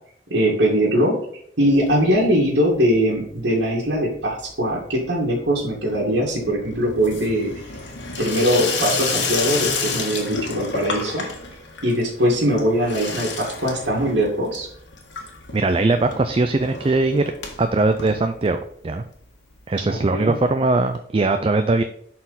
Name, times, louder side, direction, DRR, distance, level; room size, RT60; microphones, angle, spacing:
voice 1, 0.3-1.1 1.6-7.5 8.2-11.3 11.8-14.7 19.9-20.3, equal, 85° right, -5 dB, 2.0 m, -21 dB
Water tap faucet / Sink (filling or washing), 1.7-2.5 2.7-3.3 3.6-18.9 19.2-19.3 19.5-19.6 19.8-19.9 20.9-21.0, left 4 dB, 80° left, 1.7 m, -31 dB
voice 2, 15.5-17.2 17.6-19.0 19.7-21.8, right 3 dB, 30° right, 8 dB, 0.4 m, -20 dB
11.5 x 4.3 x 4.0 m, 0.67 s
head